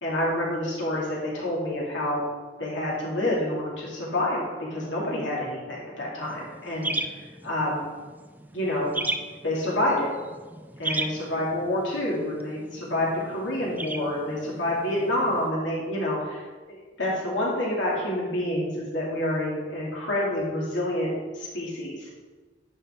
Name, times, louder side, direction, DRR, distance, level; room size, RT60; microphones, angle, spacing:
voice 1, 0.0-2.2 2.6-7.1 7.4-7.8 8.5-9.0 9.4-10.1 10.8-16.4 16.7-22.1, left 1 dB, 85° left, -5 dB, 2.6 m, -28 dB
sound 1, 6.2-15.5, right 2 dB, 10° right, 0.3 m, -36 dB
10.0 x 5.3 x 3.7 m, 1.4 s
head